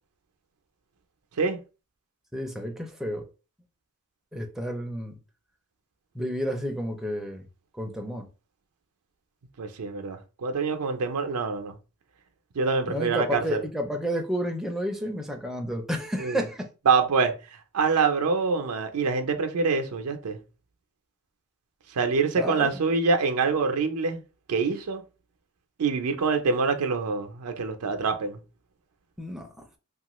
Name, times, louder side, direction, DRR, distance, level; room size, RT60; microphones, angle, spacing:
voice 1, 2.3-3.3 4.3-5.2 6.1-7.5 7.8-8.3 12.9-16.7 22.4-22.8 29.2-29.5, equal, ahead, 0.4 m, -31 dB
voice 2, 9.6-11.7 12.6-13.6 16.2-16.4 16.9-17.3 17.7-20.4 22.0-24.2 24.5-25.0 25.8-28.4, right 4 dB, 80° right, 0.5 m, -25 dB
2.9 x 2.4 x 3.0 m
head